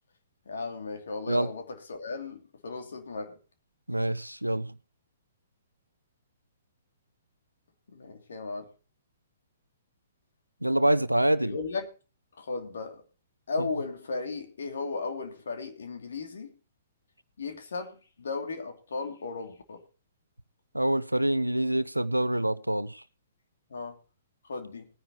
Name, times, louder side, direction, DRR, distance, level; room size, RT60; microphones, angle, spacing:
voice 1, 0.5-3.4 7.9-8.7 11.4-11.9 12.4-13.0 13.5-16.5 17.4-19.8 23.7-24.0 24.4-24.9, left 4 dB, 60° left, 2.8 m, -36 dB
voice 2, 3.9-4.7 10.6-11.6 20.7-23.0, right 1 dB, 85° right, 0.8 m, -26 dB
20.0 x 10.0 x 3.0 m
figure-of-eight pair, 120°, 0 cm